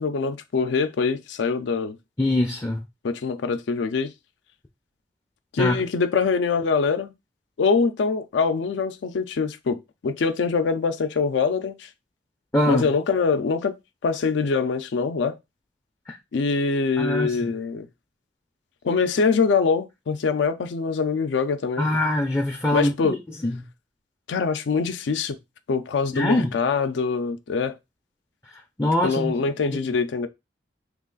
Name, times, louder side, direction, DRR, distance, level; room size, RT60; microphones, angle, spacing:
voice 1, 0.0-2.0 3.0-4.1 5.5-7.1 7.6-11.9 12.7-13.8 14.0-15.4 16.3-17.9 18.8-21.9 22.7-23.2 24.3-25.4 25.7-27.8 29.0-30.3, left 5 dB, 80° left, 0.4 m, -24 dB
voice 2, 2.2-2.8 5.6-5.8 12.5-12.9 16.1-16.2 17.0-17.5 21.8-23.2 23.4-23.7 26.1-26.6 28.8-29.3 29.7-29.8, left 1 dB, 15° left, 0.4 m, -23 dB
3.0 x 2.4 x 3.8 m
head